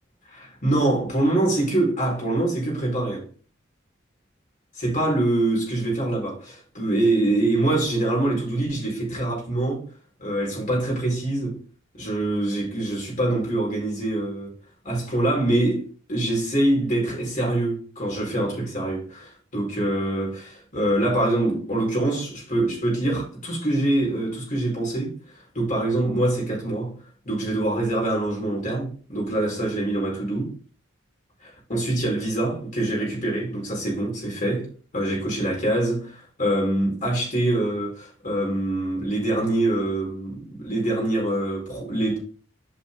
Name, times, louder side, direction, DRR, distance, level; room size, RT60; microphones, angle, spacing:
voice 1, 0.3-3.2 4.8-9.8 10.2-11.6 11.9-14.6 14.8-25.2 25.5-26.9 27.2-30.5 31.4-34.7 34.9-42.2, right 1 dB, 40° left, 4.2 m, -24 dB
8.1 x 5.3 x 3.5 m
head